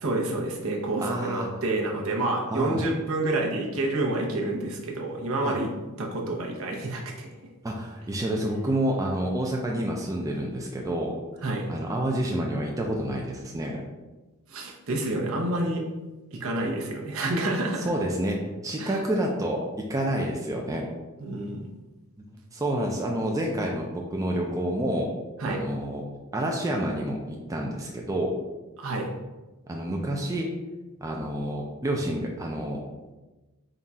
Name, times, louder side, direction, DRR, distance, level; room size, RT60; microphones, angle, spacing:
voice 1, 0.0-5.7 6.0-7.3 11.4-11.7 14.5-15.8 16.3-17.9 18.8-19.0 21.2-21.6 25.4-25.6 28.8-29.1, right 2 dB, 65° right, 0 dB, 0.7 m, -28 dB
voice 2, 1.0-1.5 2.5-2.8 5.4-5.5 7.6-11.1 11.7-13.8 17.9-20.9 22.2-22.3 22.5-25.1 25.4-26.0 26.3-28.3 29.7-30.5 31.0-32.8, right 1 dB, 15° right, 0 dB, 0.3 m, -28 dB
3.8 x 2.3 x 4.1 m, 1.1 s
head